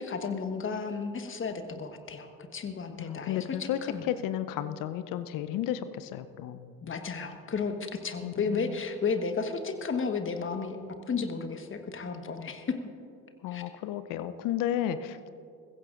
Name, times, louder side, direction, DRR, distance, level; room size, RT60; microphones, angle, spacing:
voice 1, 0.0-2.3 2.5-4.0 6.8-10.8 11.1-12.8 13.5-13.6, left 5 dB, 30° left, 7 dB, 1.3 m, -33 dB
voice 2, 3.0-3.8 4.1-6.7 8.2-8.8 13.4-15.3, left 11 dB, 50° left, 13 dB, 0.7 m, -33 dB
22.0 x 15.5 x 2.5 m, 2.5 s
figure-of-eight pair, 55°, 44 cm